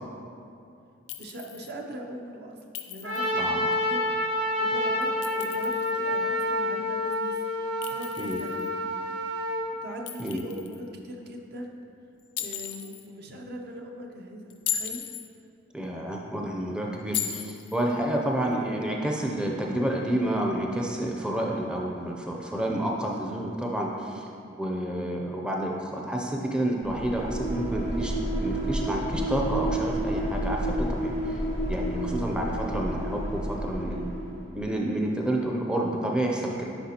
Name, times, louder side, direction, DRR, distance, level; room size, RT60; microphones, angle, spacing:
Chink clink, 1.1-1.7 2.7-3.4 5.0-5.9 7.8-8.7 10.1-10.8 12.4-13.0 14.5-15.3 17.1-17.8, left 10 dB, 65° left, 0.4 m, -35 dB
voice 1, 1.2-2.6 2.9-4.0 4.6-7.4 7.9-8.7 9.8-11.7 12.4-15.0, equal, 55° right, 2 dB, 0.7 m, -40 dB
Trumpet, 3.0-9.6, left 1 dB, 75° right, 1.4 m, -28 dB
voice 2, 3.3-3.7 8.2-8.4 10.2-10.4 15.7-24.2 24.6-28.1 28.4-31.4 31.7-34.1 34.5-36.6, right 1 dB, 5° right, -1 dB, 0.5 m, -29 dB
sound 1, 26.8-34.6, right 1 dB, 40° right, 1.4 m, -30 dB
10.0 x 4.8 x 2.9 m, 2.6 s
head